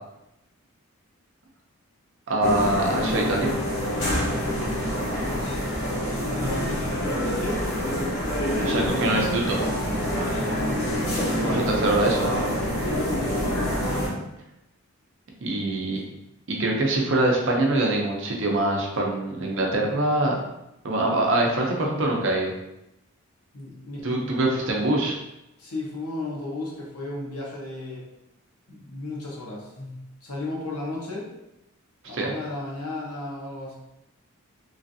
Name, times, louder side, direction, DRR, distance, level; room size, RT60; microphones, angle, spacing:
voice 1, 2.3-3.5 8.6-9.6 11.4-12.5 15.4-16.0 16.5-20.4 20.8-22.5 24.0-25.2 32.1-32.3, right 2 dB, 55° right, -1 dB, 0.6 m, -24 dB
sound 1, 2.4-14.1, equal, 60° left, 0.9 m, -26 dB
voice 2, 5.2-7.6 10.0-10.6 11.4-12.1 13.1-13.6 16.1-16.2 23.5-24.3 25.6-28.0 28.7-31.3 32.1-33.7, left 2 dB, 85° left, -3 dB, 0.9 m, -35 dB
3.1 x 2.5 x 2.6 m, 0.89 s
head